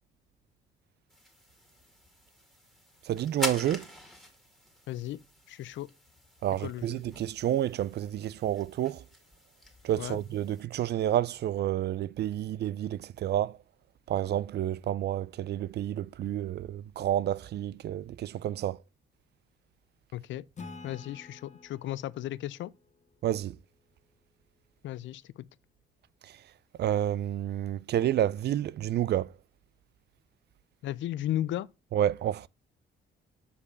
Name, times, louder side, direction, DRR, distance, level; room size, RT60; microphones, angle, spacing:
sound 1, 1.1-10.6, equal, ahead, 2.2 m, -44 dB
voice 1, 3.1-3.9 6.4-9.0 9.8-13.6 14.1-18.8 23.2-23.6 26.8-29.3 31.9-32.5, right 11 dB, 60° right, 0.4 m, -29 dB
voice 2, 4.9-5.2 5.5-5.9 6.6-7.0 10.0-10.2 20.1-20.4 20.8-22.7 24.8-25.3 30.8-31.7, left 13 dB, 70° left, 0.5 m, -35 dB
Acoustic guitar / Strum, 20.6-24.0, left 4 dB, 35° left, 1.2 m, -50 dB
6.9 x 4.9 x 5.3 m
cardioid pair, 90°, 20 cm